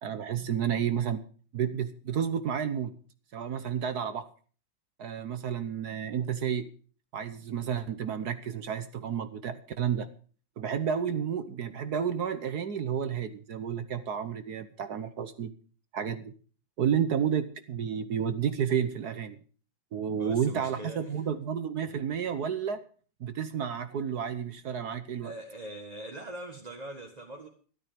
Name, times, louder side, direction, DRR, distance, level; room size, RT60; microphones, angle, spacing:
voice 1, 0.0-1.2 1.5-2.9 3.3-4.3 5.0-6.7 7.1-10.1 10.6-15.5 15.9-16.3 16.8-19.4 19.9-22.8 23.2-25.3, right 8 dB, 55° right, 1.3 m, -31 dB
voice 2, 20.2-21.2 25.2-27.5, right 1 dB, 20° right, 1.6 m, -42 dB
13.5 x 12.5 x 5.1 m
omnidirectional pair, 2.3 m